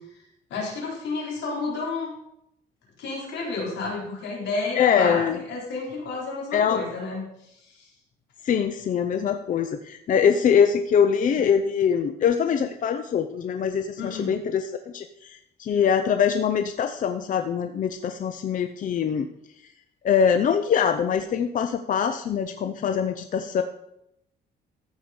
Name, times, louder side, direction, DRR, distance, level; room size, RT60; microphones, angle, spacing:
voice 1, 0.5-2.1 3.0-7.2 7.7-7.9 14.0-14.3, left 3 dB, 85° left, -3 dB, 4.1 m, -31 dB
voice 2, 4.7-5.4 6.5-6.8 8.4-19.3 20.0-23.6, left 7 dB, 50° left, 8 dB, 0.6 m, -23 dB
14.5 x 4.9 x 5.3 m, 0.81 s
cardioid pair, 120°, 18 cm